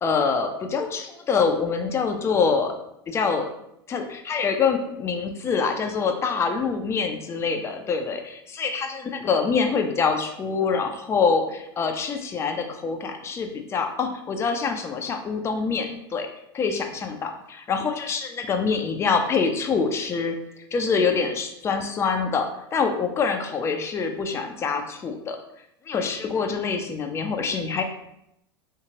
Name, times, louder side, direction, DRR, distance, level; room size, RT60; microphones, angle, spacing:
voice 1, 0.0-2.7 3.1-3.5 3.9-16.3 16.5-20.3 20.7-25.4 25.9-27.8, left 5 dB, 20° left, 5 dB, 0.4 m, -25 dB
2.8 x 2.8 x 2.7 m, 0.79 s
hypercardioid pair, 90°, 13 cm